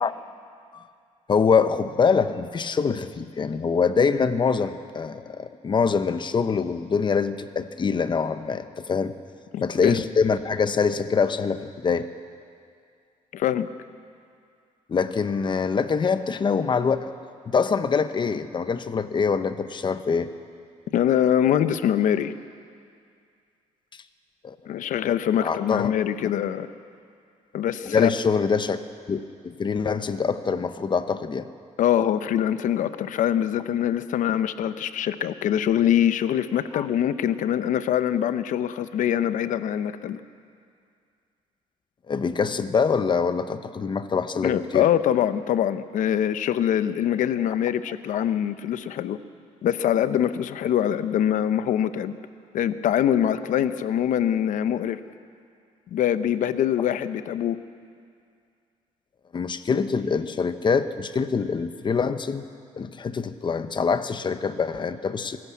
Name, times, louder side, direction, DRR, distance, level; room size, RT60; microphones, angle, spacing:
voice 1, 1.3-9.1 9.6-12.1 14.9-17.1 17.5-20.3 24.4-24.6 24.8-25.1 25.4-25.9 27.8-28.8 29.1-31.5 36.7-36.9 42.1-44.9 59.3-62.4 62.8-65.4, left 5 dB, 35° left, 11 dB, 0.9 m, -24 dB
voice 2, 9.5-10.0 13.3-13.7 20.9-22.3 24.7-26.7 27.5-28.1 31.8-40.2 44.4-49.2 49.6-52.1 52.5-55.0 55.9-57.6, left 10 dB, 80° left, 12 dB, 0.8 m, -24 dB
23.5 x 14.0 x 8.4 m, 2.3 s
cardioid pair, 110°, 13 cm